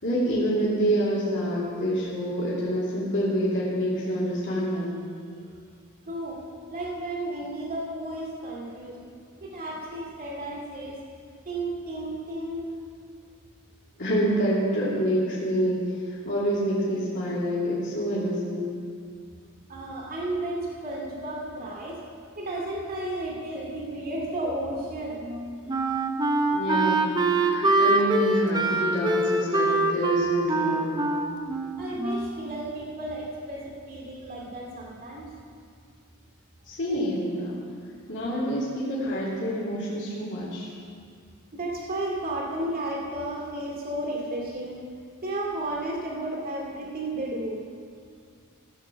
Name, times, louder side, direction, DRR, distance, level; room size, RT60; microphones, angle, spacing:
voice 1, 0.0-5.0 14.0-18.7 26.5-31.1 36.7-37.5 38.1-40.7, equal, 55° left, -8 dB, 2.7 m, -27 dB
voice 2, 6.1-6.4 6.7-9.0 9.4-11.0 11.4-12.7 19.7-22.0 22.4-25.2 25.7-25.8 31.8-35.3 41.5-44.8 45.2-47.6, right 1 dB, 40° right, -2 dB, 2.2 m, -33 dB
Wind instrument woodwind instrument, 25.2-32.5, right 2 dB, 20° right, 0.7 m, -24 dB
15.5 x 6.7 x 7.2 m, 2.3 s
head